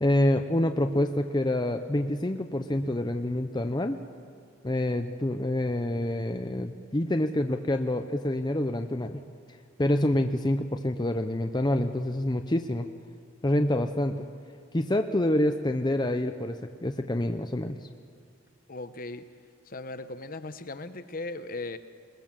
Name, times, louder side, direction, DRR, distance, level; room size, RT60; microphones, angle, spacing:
voice 1, 0.0-4.0 4.6-9.2 9.8-12.9 13.4-14.3 14.7-17.8, left 1 dB, 20° left, 6 dB, 0.7 m, -27 dB
voice 2, 18.7-19.2 19.7-21.8, left 2 dB, 45° left, 10 dB, 1.0 m, -38 dB
21.5 x 20.5 x 7.5 m, 2.4 s
head